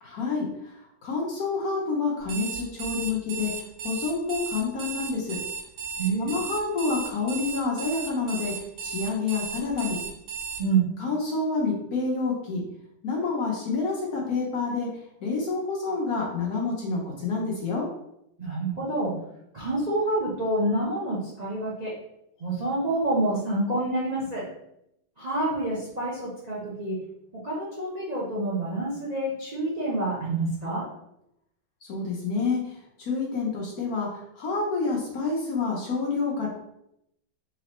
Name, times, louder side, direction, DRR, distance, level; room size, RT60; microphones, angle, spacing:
voice 1, 0.0-5.4 6.2-8.5 8.8-10.0 11.0-12.6 13.0-17.8 31.8-36.5, left 4 dB, 55° left, -3 dB, 1.1 m, -28 dB
Alarm, 2.2-10.6, right 5 dB, 70° right, 1.5 m, -35 dB
voice 2, 6.0-6.3 10.6-10.8 18.4-19.1 19.5-21.9 22.4-24.4 25.2-27.0 27.3-30.8, right 2 dB, 45° right, -6 dB, 0.5 m, -27 dB
4.2 x 3.3 x 3.0 m, 0.79 s
omnidirectional pair, 2.2 m